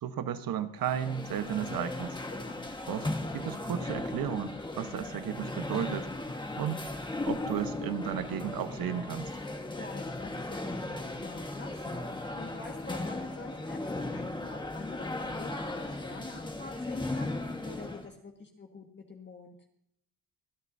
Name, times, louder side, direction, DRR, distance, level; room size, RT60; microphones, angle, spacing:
voice 1, 0.0-2.2 2.9-3.1 3.3-6.1 6.6-6.9 7.3-9.3, right 9 dB, 65° right, 10 dB, 1.2 m, -34 dB
sound 1, 0.8-18.1, left 2 dB, 10° left, 1.5 m, -37 dB
voice 2, 2.3-2.6 9.7-19.6, left 3 dB, 30° left, 1 dB, 1.7 m, -46 dB
25.0 x 8.9 x 2.7 m, 0.73 s
cardioid pair, 115°, 37 cm